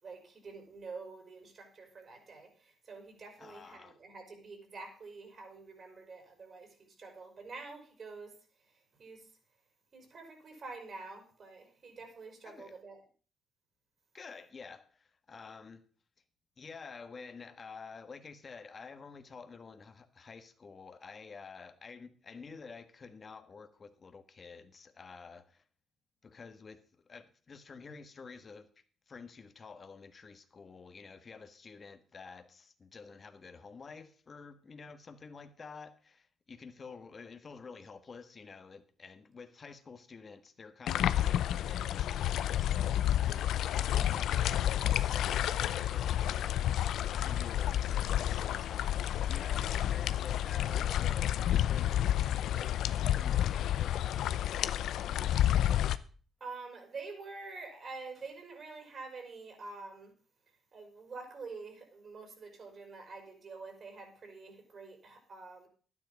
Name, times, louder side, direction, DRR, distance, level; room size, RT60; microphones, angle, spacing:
voice 1, 0.0-8.3 8.7-9.3 9.9-13.0 56.4-60.1 60.7-65.7, right 4 dB, 50° right, 4.9 m, -47 dB
voice 2, 3.4-4.0 12.4-12.7 14.1-15.8 16.6-25.6 26.2-28.7 29.1-52.7 53.1-55.7, left 5 dB, 40° left, 1.5 m, -50 dB
sound 1, 40.9-56.0, left 11 dB, 80° left, 0.6 m, -30 dB
12.0 x 9.8 x 5.3 m
cardioid pair, 90°, 0 cm